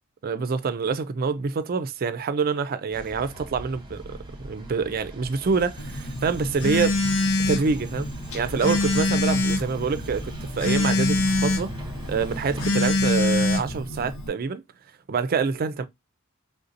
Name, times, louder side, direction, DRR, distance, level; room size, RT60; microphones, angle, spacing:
voice 1, 0.2-4.2 4.4-7.0 7.5-8.1 8.3-11.7 12.1-14.6 15.1-15.8, right 5 dB, 45° right, 0.4 m, -26 dB
sound 1, 2.9-12.7, right 1 dB, 20° right, 0.8 m, -40 dB
Telephone, 5.8-14.3, left 2 dB, 75° left, 0.8 m, -25 dB
3.5 x 2.7 x 2.5 m
head